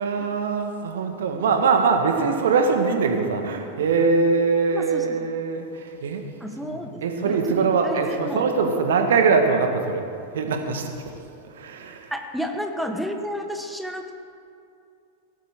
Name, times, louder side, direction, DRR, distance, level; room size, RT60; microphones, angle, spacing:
voice 1, 0.0-6.2 6.6-10.0 10.3-10.9 11.5-12.1, right 4 dB, 60° right, 5 dB, 1.5 m, -22 dB
voice 2, 4.7-5.2 6.4-8.5 12.1-14.1, equal, ahead, 4 dB, 1.2 m, -31 dB
17.0 x 12.0 x 3.7 m, 2.4 s
figure-of-eight pair, 90°, 0 cm